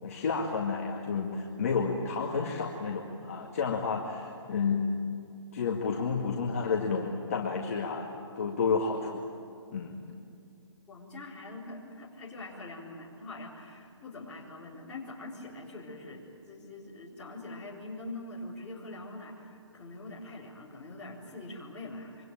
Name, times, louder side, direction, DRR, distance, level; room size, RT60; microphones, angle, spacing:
voice 1, 0.0-4.9 5.5-9.3 9.7-10.0, left 5 dB, 30° left, -3 dB, 2.1 m, -31 dB
voice 2, 10.9-22.2, left 2 dB, 5° left, -9 dB, 4.0 m, -43 dB
26.0 x 24.5 x 9.1 m, 2.4 s
hypercardioid pair, 175°, 15 cm